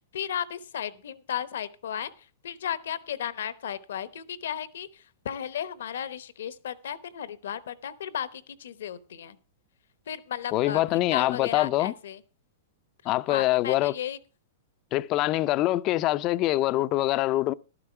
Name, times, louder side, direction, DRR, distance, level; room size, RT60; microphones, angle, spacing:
voice 1, 0.1-2.1 2.4-4.9 5.2-9.4 10.1-12.2 13.3-14.2, left 9 dB, 75° left, 0.9 m, -34 dB
voice 2, 10.5-11.9 13.1-14.0 14.9-17.5, left 16 dB, 40° left, 0.5 m, -24 dB
12.5 x 11.0 x 4.4 m
hypercardioid pair, 120°, 0 cm